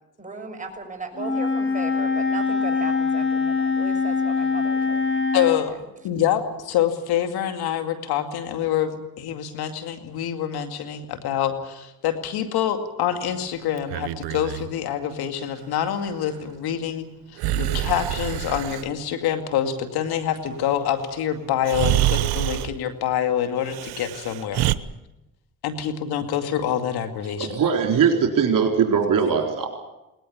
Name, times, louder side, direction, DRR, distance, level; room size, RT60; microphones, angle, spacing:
voice 1, 0.2-5.8, right 3 dB, 20° right, 3 dB, 6.1 m, -37 dB
Wind instrument woodwind instrument, 1.1-5.6, left 4 dB, 35° left, 7.4 m, -23 dB
voice 2, 5.3-5.7 6.0-17.1 17.3-24.6 25.6-27.5, left 10 dB, 85° left, 7 dB, 2.4 m, -26 dB
Breathing, 13.8-14.7 17.4-18.9 21.0-21.1 21.6-22.8 23.6-24.7, right 15 dB, 85° right, 0.9 m, -26 dB
voice 3, 27.4-29.7, right 6 dB, 60° right, 2 dB, 4.1 m, -20 dB
20.5 x 19.0 x 8.7 m, 0.95 s
supercardioid pair, 65°, 37 cm